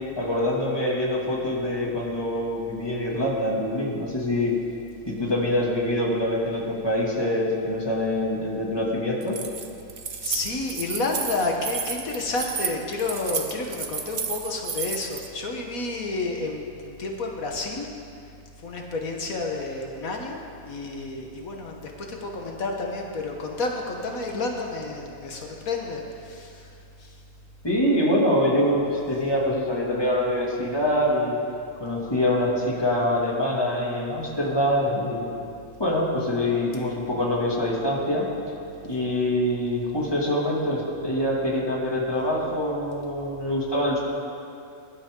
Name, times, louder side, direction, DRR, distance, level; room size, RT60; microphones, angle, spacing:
voice 1, 0.2-4.6 5.1-9.4 27.6-31.4 31.8-35.3 35.8-38.3 38.8-44.0, left 1 dB, 15° left, -4 dB, 2.4 m, -25 dB
Keys jangling, 9.2-15.3, right 6 dB, 50° right, 1.1 m, -32 dB
voice 2, 10.2-17.9 18.6-26.7 27.0-27.2, left 3 dB, 80° left, 1 dB, 1.7 m, -30 dB
22.0 x 12.0 x 3.8 m, 2.5 s
omnidirectional pair, 1.5 m